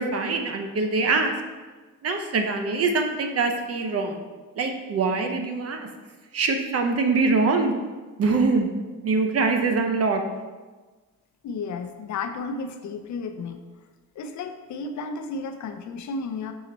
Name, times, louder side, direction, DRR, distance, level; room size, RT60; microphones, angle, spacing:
voice 1, 0.0-1.3 2.0-4.2 4.6-5.9 6.3-7.7 8.2-8.7 9.0-10.2, right 4 dB, 50° right, 5 dB, 0.7 m, -23 dB
voice 2, 11.4-13.6 14.2-16.5, left 4 dB, 65° left, 7 dB, 0.6 m, -33 dB
5.7 x 3.9 x 4.2 m, 1.3 s
cardioid pair, 125°, 32 cm